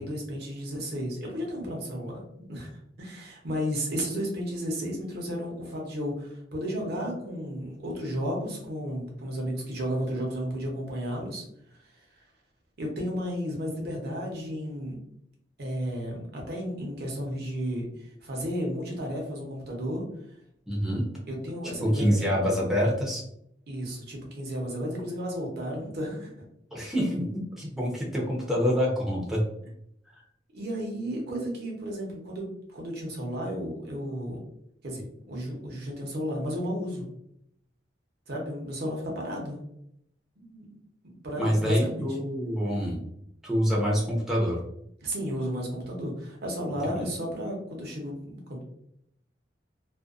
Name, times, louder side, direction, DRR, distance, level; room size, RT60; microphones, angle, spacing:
voice 1, 0.0-2.7 3.0-11.4 12.8-15.0 15.6-20.0 21.3-22.2 23.7-26.3 30.5-34.4 34.8-37.0 38.3-39.6 40.4-42.1 45.0-48.6, equal, 60° right, -1 dB, 0.8 m, -33 dB
voice 2, 20.7-21.1 21.8-23.2 26.7-29.4 30.1-30.2 41.4-43.0 43.4-44.6 46.9-47.2, equal, ahead, -5 dB, 0.7 m, -26 dB
2.5 x 2.2 x 2.4 m, 0.74 s
head